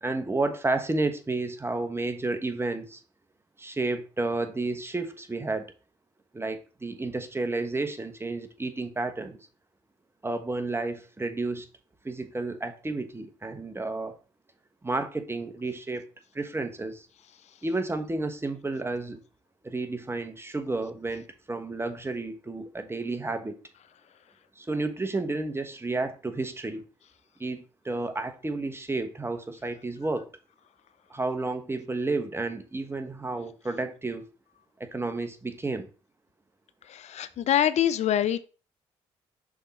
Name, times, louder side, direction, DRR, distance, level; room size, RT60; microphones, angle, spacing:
voice 1, 0.0-3.0 3.6-5.7 6.3-9.4 10.2-11.7 12.0-14.2 14.8-16.1 16.3-17.1 17.6-19.2 19.6-23.6 24.6-26.8 27.4-30.3 31.1-34.3 34.8-35.9, right 2 dB, 20° right, 1.1 m, -31 dB
voice 2, 36.9-38.5, left 10 dB, 60° left, 0.4 m, -25 dB
6.3 x 3.7 x 4.2 m
supercardioid pair, 55°, 13 cm